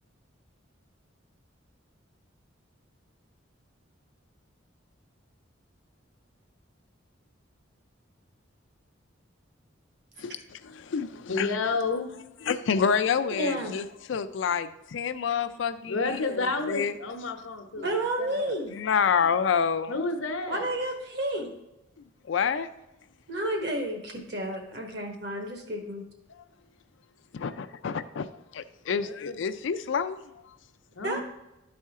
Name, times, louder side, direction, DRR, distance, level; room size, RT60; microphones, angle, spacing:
voice 1, 10.2-11.5 12.5-13.8 14.1-16.9 18.7-19.9 22.3-22.7 27.3-28.3 28.5-30.2, left 6 dB, 65° left, 11 dB, 0.4 m, -28 dB
voice 2, 11.3-12.1 15.8-17.9 18.2-18.5 19.9-20.7 28.9-29.4 30.9-31.2, left 3 dB, 85° left, 5 dB, 0.9 m, -31 dB
voice 3, 13.4-13.7 17.8-18.8 20.5-21.5 23.3-26.0 31.0-31.2, right 1 dB, 55° right, 3 dB, 1.3 m, -31 dB
11.5 x 4.3 x 3.6 m, 0.91 s
head